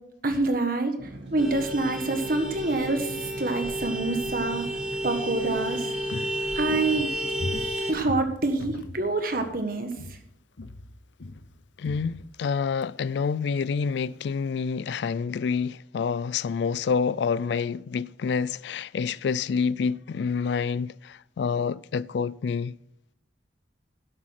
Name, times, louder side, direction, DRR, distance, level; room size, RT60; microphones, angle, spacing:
voice 1, 0.2-0.9 1.3-4.6 5.0-5.9 6.5-7.1 7.9-9.9, right 2 dB, 50° right, 1.6 m, -26 dB
sound 1, 1.0-7.6, right 2 dB, 65° right, 2.5 m, -42 dB
Vehicle horn car horn honking, 1.4-7.9, equal, 5° right, 2.5 m, -31 dB
Walk footsteps, 5.3-9.6 9.9-10.3 10.6-12.9 13.2-13.3, left 2 dB, 85° left, 0.8 m, -39 dB
voice 2, 11.8-22.8, left 5 dB, 70° left, 0.3 m, -28 dB
11.0 x 8.2 x 5.9 m
head